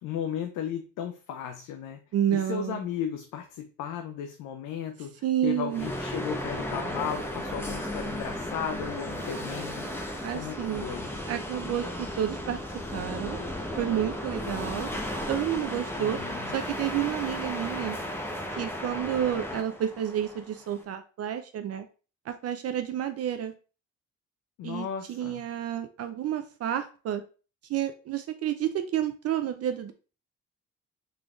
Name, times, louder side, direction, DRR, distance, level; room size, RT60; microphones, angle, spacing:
voice 1, 0.0-2.0 2.3-9.8 10.3-11.1 16.0-16.5 24.6-25.4, left 8 dB, 85° left, 5 dB, 0.5 m, -35 dB
voice 2, 2.1-2.8 5.2-5.9 10.2-10.9 11.3-12.6 12.9-13.4 13.8-14.9 15.3-16.2 16.5-18.0 18.6-21.9 22.3-23.5 24.6-27.2 27.7-29.9, right 10 dB, 55° right, 8 dB, 0.4 m, -30 dB
sound 1, 5.7-20.8, left 1 dB, 10° left, 0.7 m, -35 dB
3.8 x 3.3 x 2.3 m, 0.36 s
cardioid pair, 90°, 30 cm